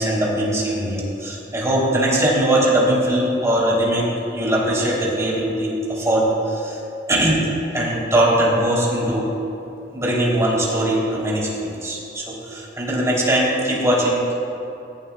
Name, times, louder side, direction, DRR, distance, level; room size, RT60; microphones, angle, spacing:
voice 1, 0.0-6.8 7.1-7.4 7.7-9.3 9.9-14.3, right 1 dB, 15° right, -5 dB, 3.4 m, -20 dB
17.5 x 16.0 x 2.4 m, 2.8 s
head